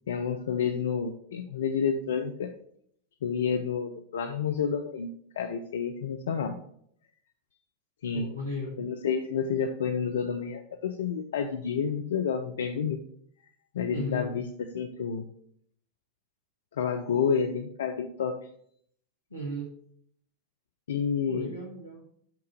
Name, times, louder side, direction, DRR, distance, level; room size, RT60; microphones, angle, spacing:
voice 1, 0.1-2.5 3.2-5.1 5.3-6.6 8.0-8.3 8.8-13.0 13.7-14.4 14.7-15.2 16.8-18.5 20.9-21.5, left 6 dB, 60° left, 7 dB, 0.5 m, -29 dB
voice 2, 8.1-8.7 13.9-14.2 19.3-19.7 21.3-22.0, equal, 85° left, -4 dB, 1.7 m, -36 dB
6.0 x 5.9 x 5.9 m, 0.66 s
figure-of-eight pair, 90°, 0 cm